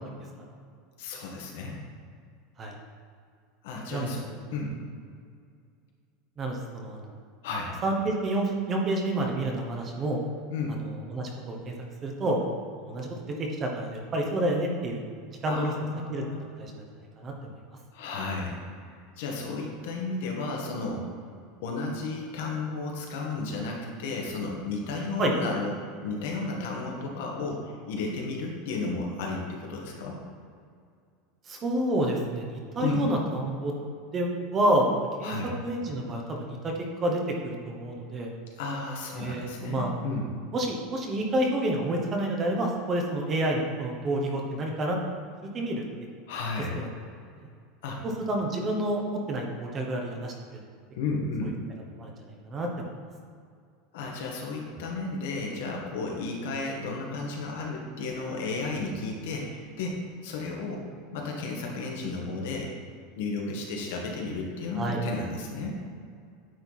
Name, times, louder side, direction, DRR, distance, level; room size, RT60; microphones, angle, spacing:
voice 1, 1.0-1.8 3.6-4.2 4.5-4.7 7.4-7.7 10.5-10.8 15.5-16.4 17.9-18.6 19.2-21.1 21.6-30.2 32.8-33.0 35.2-35.5 38.6-40.3 46.3-46.8 47.8-48.0 50.9-51.6 53.9-60.8 61.1-62.7 63.2-65.7, left 3 dB, 75° left, -1 dB, 1.6 m, -33 dB
voice 2, 3.9-4.4 6.4-7.1 7.8-10.2 11.1-11.7 12.0-12.4 12.8-15.0 15.4-15.7 16.1-16.2 16.6-16.8 17.2-17.5 25.2-25.3 31.5-33.7 34.1-34.9 35.2-35.3 35.6-36.7 37.0-38.3 39.2-39.9 40.5-45.0 45.5-46.1 46.8-46.9 48.0-50.6 51.4-51.5 52.0-52.1 52.5-52.7 64.8-65.0, right 1 dB, 25° right, 1 dB, 1.0 m, -29 dB
9.4 x 4.5 x 4.1 m, 2.2 s
supercardioid pair, 165°, 0 cm